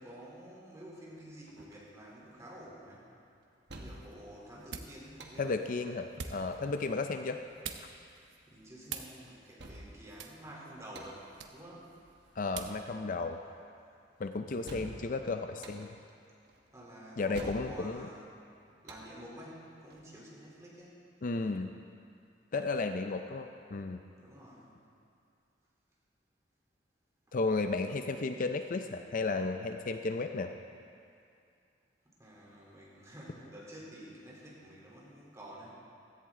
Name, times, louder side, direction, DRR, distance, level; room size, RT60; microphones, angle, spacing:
voice 1, 0.0-3.1 3.7-5.6 7.3-7.5 8.5-11.9 16.7-18.3 18.8-21.0 24.2-24.7 27.3-27.4 32.0-35.8, right 1 dB, 15° right, -5 dB, 3.3 m, -50 dB
sound 1, 0.9-20.1, right 1 dB, 65° right, 1.4 m, -52 dB
sound 2, 3.7-12.9, right 6 dB, 90° right, 0.9 m, -48 dB
voice 2, 5.4-7.4 12.4-13.4 14.2-15.9 17.2-18.1 21.2-21.7 22.5-24.0 27.3-30.5, left 3 dB, 45° left, 7 dB, 0.5 m, -33 dB
16.5 x 14.0 x 3.7 m, 2.4 s
head